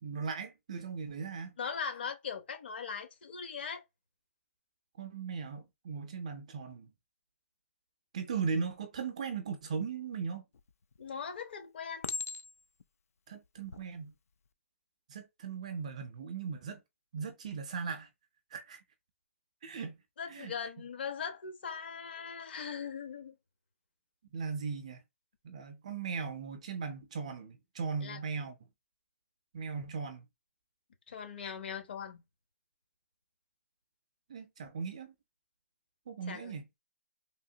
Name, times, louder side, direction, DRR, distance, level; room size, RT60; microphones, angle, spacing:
voice 1, 0.0-1.6 5.0-6.9 8.1-10.4 13.3-14.1 15.1-16.8 17.1-18.1 18.5-18.8 19.6-20.0 20.3-20.5 24.3-25.0 25.4-28.6 29.5-30.3 34.3-35.1 36.1-36.7, right 5 dB, 25° right, 0.4 m, -38 dB
voice 2, 1.6-3.8 11.0-12.1 20.2-23.3 28.0-28.2 31.1-32.2 36.3-36.5, left 6 dB, 45° left, 0.9 m, -40 dB
Chink clink, 10.5-11.1 12.0-12.8 13.6-13.8, left 5 dB, 75° left, 0.4 m, -39 dB
3.5 x 2.8 x 2.6 m
hypercardioid pair, 175°, 8 cm